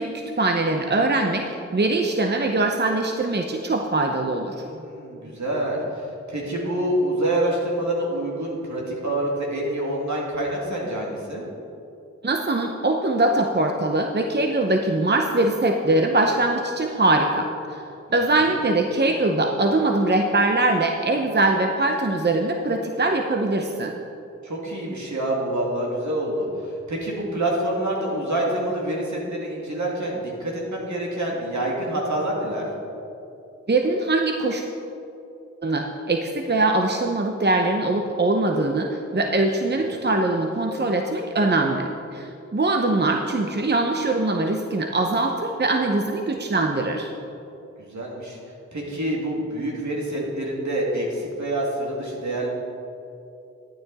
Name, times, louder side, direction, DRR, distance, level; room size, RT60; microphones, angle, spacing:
voice 1, 0.0-1.5 1.7-4.5 12.2-17.5 18.1-23.9 33.7-34.6 35.6-47.1, right 2 dB, 35° right, 3 dB, 0.8 m, -22 dB
voice 2, 4.5-11.4 18.4-18.5 24.4-32.7 39.8-39.9 47.8-48.4 48.7-52.5, right 1 dB, 70° right, -3 dB, 2.5 m, -27 dB
12.5 x 9.1 x 4.1 m, 2.7 s
cardioid pair, 45°, 30 cm